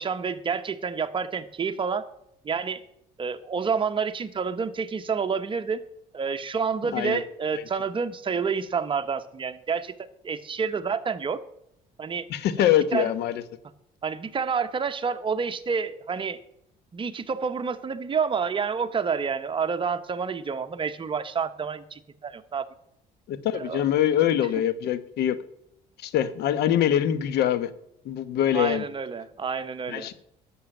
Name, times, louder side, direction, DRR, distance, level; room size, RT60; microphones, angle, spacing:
voice 1, 0.0-2.1 2.4-2.8 3.2-5.8 6.1-11.4 12.0-12.3 12.6-13.1 14.0-16.4 16.9-22.6 23.5-23.8 28.5-30.1, right 5 dB, 30° right, 9 dB, 1.1 m, -29 dB
voice 2, 12.3-13.4 23.3-25.4 26.0-27.7 28.0-28.9 29.9-30.1, left 10 dB, 75° left, 14 dB, 1.1 m, -24 dB
11.5 x 7.1 x 8.9 m, 0.75 s
cardioid pair, 110°, 17 cm